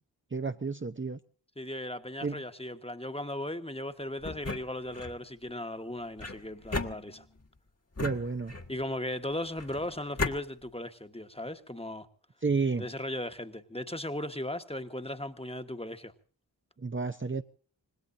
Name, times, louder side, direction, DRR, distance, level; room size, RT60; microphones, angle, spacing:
voice 1, 0.3-1.2 2.2-2.4 8.0-8.5 12.4-12.9 16.8-17.4, right 4 dB, 25° right, 0.8 m, -31 dB
voice 2, 1.6-7.2 8.7-12.1 12.8-16.1, left 1 dB, 15° left, 1.4 m, -37 dB
sound 1, 4.2-5.2 6.2-7.5 8.0-8.8 9.6-10.4, left 3 dB, 35° left, 1.6 m, -36 dB
26.5 x 20.0 x 2.7 m
wide cardioid pair, 50°, 44 cm